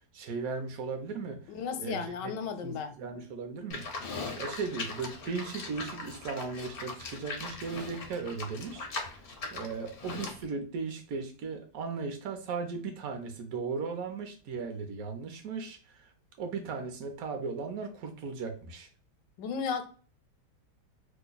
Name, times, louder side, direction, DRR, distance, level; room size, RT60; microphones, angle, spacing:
voice 1, 0.1-1.4 1.8-2.3 2.6-3.8 4.4-8.9 9.5-16.1 16.4-18.9, right 4 dB, 65° right, 5 dB, 1.1 m, -37 dB
voice 2, 1.5-3.0 19.4-19.9, left 6 dB, 85° left, 8 dB, 1.2 m, -34 dB
Livestock farm animals working animals, 3.7-10.4, left 3 dB, 65° left, 0.5 m, -40 dB
3.0 x 2.2 x 3.8 m, 0.39 s
omnidirectional pair, 1.8 m